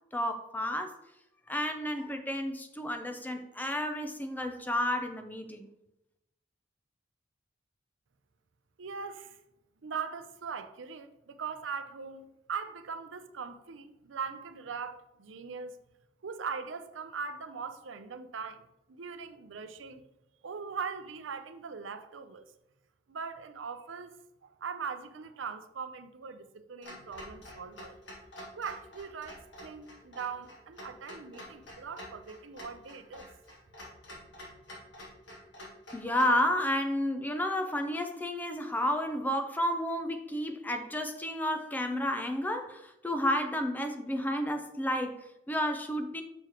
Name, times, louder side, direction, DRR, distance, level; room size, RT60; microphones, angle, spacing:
voice 1, 0.1-1.0 1.5-5.7 35.9-46.2, left 1 dB, 10° left, 0.5 m, -31 dB
voice 2, 8.8-9.4 9.8-15.8 16.2-20.0 20.4-22.5 23.1-24.2 24.4-28.0 28.6-33.3, right 5 dB, 85° right, 0.6 m, -40 dB
Clock, 26.8-36.4, left 1 dB, 70° left, 2.0 m, -48 dB
6.8 x 6.1 x 3.0 m
head